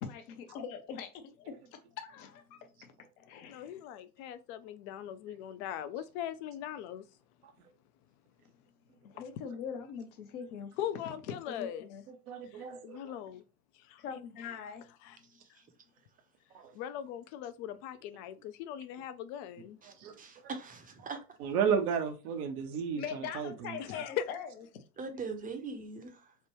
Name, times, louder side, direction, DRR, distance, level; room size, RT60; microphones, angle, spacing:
voice 1, 0.0-1.6 1.9-3.8 9.0-10.8 11.5-12.0 14.0-14.9 23.0-24.6, left 7 dB, 65° left, 0.9 m, -42 dB
voice 2, 3.5-7.0 10.8-11.9 12.5-13.4 13.9-14.0 14.4-14.6 15.0-15.2 16.7-19.8 23.8-24.2, left 10 dB, 50° left, 0.5 m, -40 dB
voice 3, 12.1-13.0 16.5-16.7 20.0-20.1 21.4-23.8, right 7 dB, 70° right, 0.8 m, -33 dB
voice 4, 19.8-21.2 25.0-26.3, right 4 dB, 20° right, 0.7 m, -41 dB
3.3 x 2.2 x 3.0 m
hypercardioid pair, 80°, 46 cm